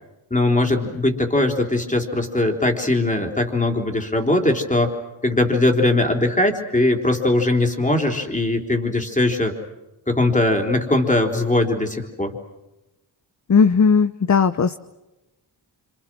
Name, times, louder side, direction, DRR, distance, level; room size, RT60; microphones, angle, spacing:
voice 1, 0.3-4.9 5.2-9.6 10.1-12.4, left 2 dB, 15° left, 4 dB, 3.9 m, -20 dB
voice 2, 13.5-14.8, left 5 dB, 35° left, 12 dB, 0.8 m, -16 dB
27.5 x 26.5 x 6.3 m, 1.0 s
cardioid pair, 70°, 48 cm